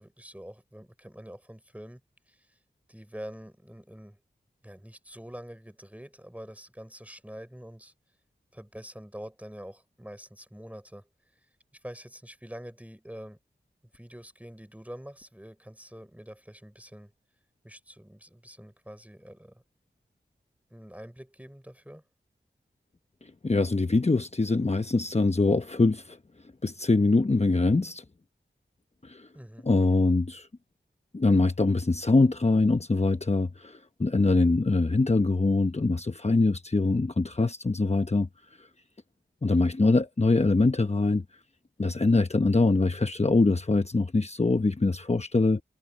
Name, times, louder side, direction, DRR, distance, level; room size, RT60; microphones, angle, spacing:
voice 1, 0.0-2.0 2.3-2.5 2.9-4.2 4.6-7.9 8.5-11.1 11.8-13.4 13.9-17.1 17.6-19.6 20.7-22.0 29.3-29.7, equal, 5° right, 4.0 m, -45 dB
voice 2, 23.2-26.2 26.6-28.0 29.0-29.3 29.6-30.5 31.1-38.3 38.6-38.7 39.4-41.2 41.8-45.6, left 3 dB, 35° left, 1.0 m, -23 dB
wide cardioid pair, 50°, 19 cm